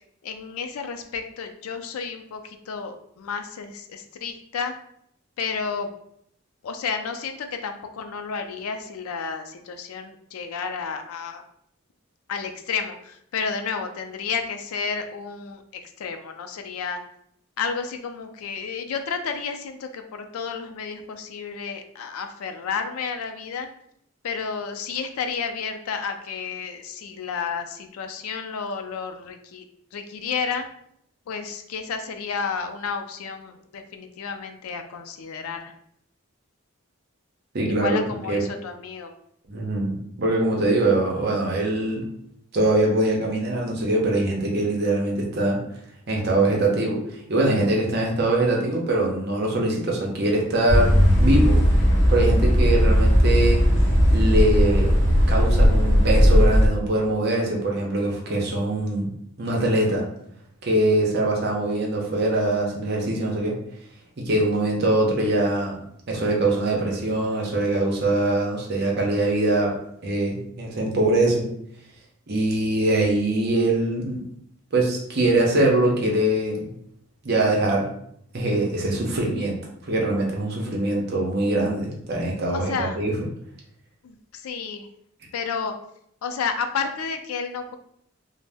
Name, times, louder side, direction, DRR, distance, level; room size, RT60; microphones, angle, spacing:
voice 1, 0.2-4.8 5.4-5.9 6.6-11.4 12.3-17.0 17.6-23.7 24.2-29.7 29.9-30.7 31.3-35.7 37.7-39.1 82.5-83.0 84.0-84.9 85.3-85.7 86.2-87.8, left 5 dB, 90° left, 6 dB, 0.4 m, -31 dB
voice 2, 37.5-38.0 38.3-38.4 39.5-42.1 42.5-45.6 46.1-51.6 52.1-53.6 54.1-54.9 55.3-59.1 59.4-60.0 60.6-63.6 64.2-65.8 66.1-69.7 70.0-71.5 72.3-74.2 74.7-76.7 77.2-77.9 78.3-83.1, right 2 dB, 50° right, -1 dB, 0.6 m, -23 dB
sound 1, 50.7-56.7, equal, 60° left, 0.8 m, -17 dB
2.6 x 2.0 x 3.3 m, 0.71 s
head